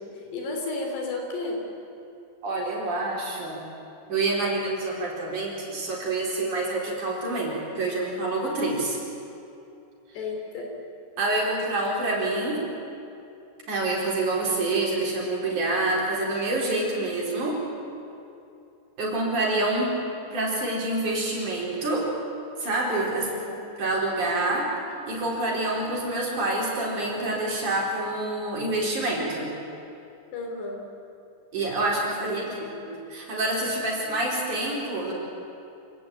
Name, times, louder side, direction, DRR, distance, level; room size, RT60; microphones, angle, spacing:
voice 1, 0.0-1.6 10.1-10.7 23.1-23.5 30.3-30.8 32.2-32.8, left 3 dB, 70° left, 1 dB, 5.6 m, -33 dB
voice 2, 2.4-3.6 4.1-9.0 11.2-12.6 13.7-17.6 19.0-20.0 20.3-22.1 22.6-23.3 23.8-24.7 25.1-29.5 31.5-32.6 32.9-35.1, right 2 dB, 45° right, -3 dB, 5.6 m, -27 dB
27.0 x 17.5 x 9.1 m, 2.8 s
omnidirectional pair, 5.1 m